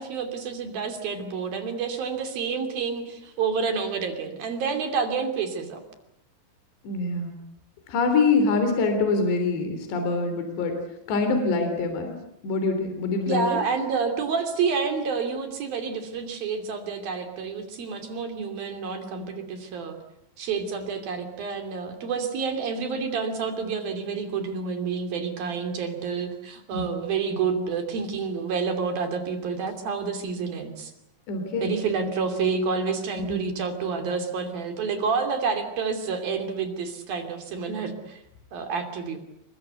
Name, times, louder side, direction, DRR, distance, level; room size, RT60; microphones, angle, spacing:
voice 1, 0.0-5.8 13.3-20.0 20.4-30.9 31.6-38.2 38.5-39.2, right 5 dB, 55° right, 6 dB, 4.3 m, -29 dB
voice 2, 6.8-7.4 7.9-10.7 11.1-12.2 12.4-13.6 26.7-26.9 31.3-31.7 33.2-33.4, left 3 dB, 65° left, 6 dB, 5.4 m, -24 dB
28.0 x 23.5 x 8.2 m, 0.80 s
omnidirectional pair, 5.4 m